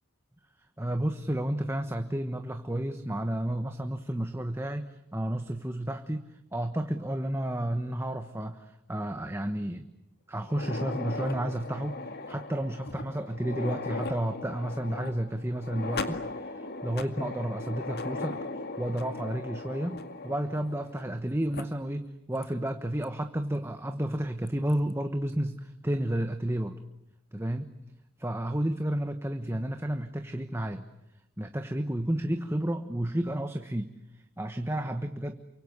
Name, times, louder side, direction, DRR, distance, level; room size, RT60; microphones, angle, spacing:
voice 1, 0.8-6.2 6.5-9.9 10.3-12.0 12.3-18.4 18.8-26.8 27.3-27.7 28.2-30.8 31.4-35.4, right 1 dB, 10° right, 7 dB, 1.2 m, -31 dB
sound 1, 10.4-21.2 21.5-21.6 22.4-22.5 23.0-23.1 24.5-24.7, left 3 dB, 45° left, 2.1 m, -38 dB
29.0 x 25.0 x 8.2 m, 0.83 s
head